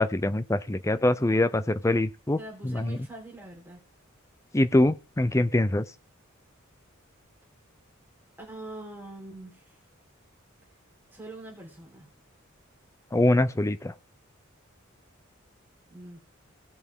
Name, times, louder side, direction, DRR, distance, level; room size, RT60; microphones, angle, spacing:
voice 1, 0.0-2.4 2.6-3.0 4.5-5.8 13.1-13.9, left 1 dB, 15° left, 13 dB, 0.5 m, -24 dB
voice 2, 2.4-3.8 8.4-9.8 11.1-12.1 15.9-16.2, right 2 dB, 10° right, -2 dB, 3.9 m, -43 dB
18.0 x 8.0 x 3.7 m, 0.36 s
head